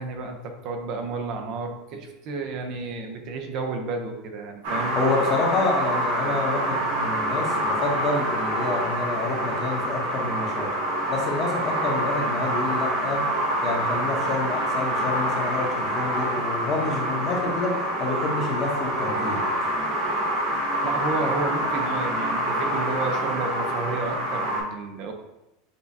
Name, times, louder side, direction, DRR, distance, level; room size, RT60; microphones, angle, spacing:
voice 1, 0.0-4.9 20.8-25.1, right 3 dB, 50° right, 4 dB, 0.7 m, -31 dB
sound 1, 4.6-24.6, right 1 dB, 70° right, 1.1 m, -26 dB
voice 2, 4.9-10.7 11.1-13.2 13.6-19.4, left 3 dB, 35° left, 0 dB, 1.0 m, -28 dB
6.7 x 2.3 x 2.7 m, 0.92 s
supercardioid pair, 140°, 0 cm